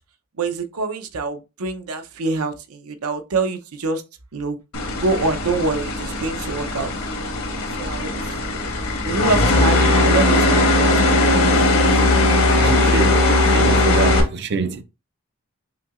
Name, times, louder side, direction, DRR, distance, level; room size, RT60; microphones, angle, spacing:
voice 1, 0.4-4.0 4.3-4.6 4.9-6.9 7.8-8.3 9.0-11.9, right 3 dB, 85° right, 0.7 m, -25 dB
sound 1, 4.7-14.2, left 2 dB, 75° left, 1.2 m, -18 dB
voice 2, 12.6-14.8, right 4 dB, 50° right, 0.5 m, -25 dB
5.9 x 2.7 x 2.4 m
head